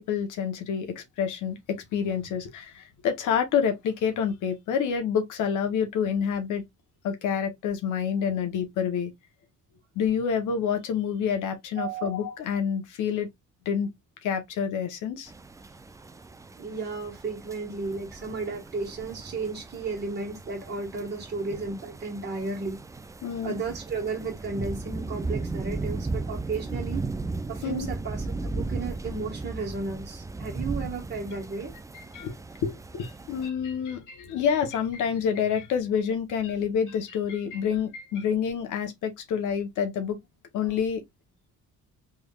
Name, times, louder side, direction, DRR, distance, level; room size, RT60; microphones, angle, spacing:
voice 1, 0.0-6.6 7.0-9.1 9.9-13.3 13.6-13.9 14.2-15.3 23.2-23.5 27.6-27.9 31.9-32.3 32.6-40.2 40.5-41.0, left 7 dB, 85° left, 1.0 m, -28 dB
voice 2, 11.8-12.2 16.6-22.8 23.4-27.1 27.5-31.7, right 4 dB, 35° right, 1.4 m, -34 dB
sound 1, 15.3-33.5, right 3 dB, 10° right, 0.3 m, -36 dB
3.5 x 3.3 x 2.4 m
cardioid pair, 90°, 30 cm